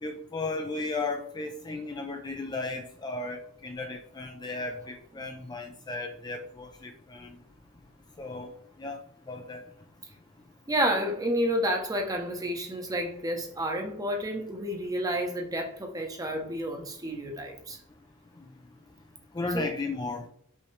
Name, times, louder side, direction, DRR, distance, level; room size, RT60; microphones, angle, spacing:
voice 1, 0.0-7.3 8.2-8.5 8.8-9.0 9.3-9.6 19.3-20.2, left 3 dB, 20° left, 0.4 m, -35 dB
voice 2, 10.7-17.8 19.5-19.7, equal, 15° right, 0.8 m, -30 dB
5.4 x 2.9 x 3.2 m
head